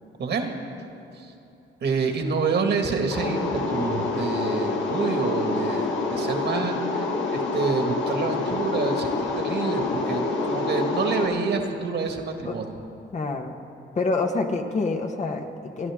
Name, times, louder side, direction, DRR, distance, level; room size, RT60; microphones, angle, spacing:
voice 1, 0.2-0.5 1.2-1.3 1.8-12.7, right 4 dB, 60° right, 3 dB, 1.9 m, -27 dB
sound 1, 3.1-11.3, left 3 dB, 70° left, 1.7 m, -27 dB
voice 2, 13.1-13.6 13.9-15.9, left 3 dB, 35° left, 4 dB, 1.3 m, -27 dB
27.0 x 11.0 x 3.7 m, 2.8 s
cardioid pair, 90°, 20 cm